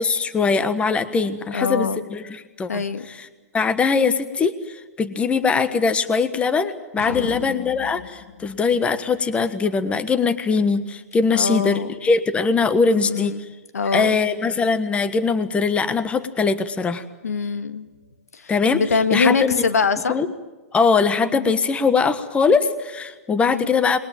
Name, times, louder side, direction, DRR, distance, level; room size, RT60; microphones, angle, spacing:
voice 1, 0.0-2.8 3.1-3.3 3.5-13.3 13.8-17.0 18.5-18.8 19.1-19.6 20.1-20.3 20.7-24.0, left 5 dB, 15° left, 12 dB, 1.4 m, -21 dB
voice 2, 1.5-2.0 2.7-3.0 7.1-7.4 11.3-11.9 13.0-13.4 13.7-14.2 17.2-17.9 18.3-20.2 21.3-21.5 23.5-23.7, left 4 dB, 85° left, 10 dB, 1.6 m, -24 dB
sound 1, 7.0-9.5, left 7 dB, 55° left, 3.5 m, -38 dB
27.5 x 21.5 x 9.0 m, 1.3 s
hypercardioid pair, 125°, 8 cm